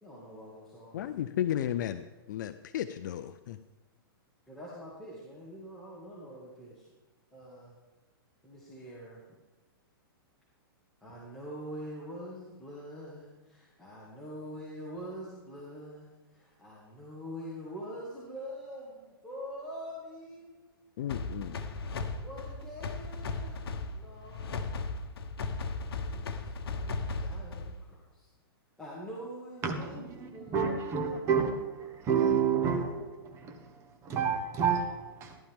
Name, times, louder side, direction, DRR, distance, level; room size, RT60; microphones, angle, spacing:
voice 1, 0.0-1.0 4.5-6.9 7.3-7.7 8.4-9.2 11.0-20.9 22.1-24.5 26.0-28.3 28.8-30.8 31.7-32.4, equal, 5° left, 2.0 m, -45 dB
voice 2, 0.9-3.6 21.0-21.6, left 11 dB, 50° left, 0.5 m, -34 dB
sound 1, 21.1-27.9, left 3 dB, 80° left, 1.1 m, -36 dB
voice 3, 29.6-33.7 34.0-35.4, right 6 dB, 20° right, 1.3 m, -30 dB
14.5 x 11.5 x 3.6 m
hypercardioid pair, 160°, 13 cm